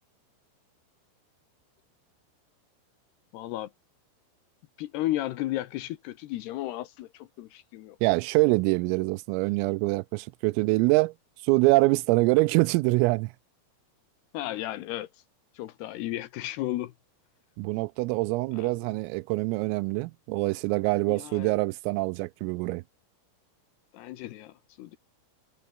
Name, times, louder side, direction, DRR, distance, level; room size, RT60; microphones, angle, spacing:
voice 1, 3.3-3.7 4.8-8.0 14.3-15.1 15.5-16.9 18.5-19.0 21.1-21.6 23.9-25.0, left 15 dB, 75° left, 2.5 m, -34 dB
voice 2, 8.0-11.1 11.4-13.3 17.6-22.8, right 23 dB, 90° right, 3.3 m, -25 dB
omnidirectional pair, 5.8 m